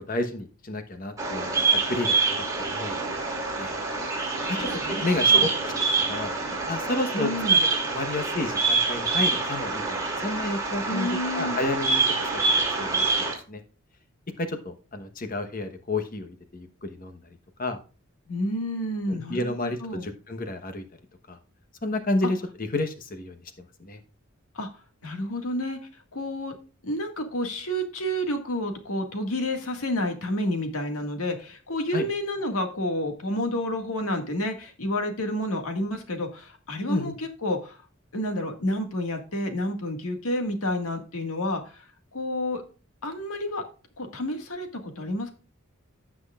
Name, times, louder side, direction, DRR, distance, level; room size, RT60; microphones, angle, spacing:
voice 1, 0.1-3.0 3.6-3.8 4.5-4.6 5.0-5.7 6.0-7.3 7.9-12.0 12.3-13.1 13.5-13.6 14.4-17.2 17.6-17.8 19.1-20.8 21.3-21.4 21.8-23.4 23.8-24.0 31.9-32.0 36.9-37.1, left 2 dB, 40° left, 7 dB, 1.1 m, -31 dB
Bird vocalization bird call bird song, 1.2-13.3, right 4 dB, 15° right, 2.6 m, -26 dB
voice 2, 4.4-5.5 7.1-7.6 10.9-11.6 18.3-20.1 22.2-22.3 24.6-24.7 25.0-25.8 26.1-26.5 26.8-37.8 38.1-41.8 42.1-42.6 43.0-43.6 44.0-45.3, left 1 dB, 80° left, 4 dB, 1.9 m, -30 dB
16.0 x 6.1 x 2.4 m, 0.36 s
head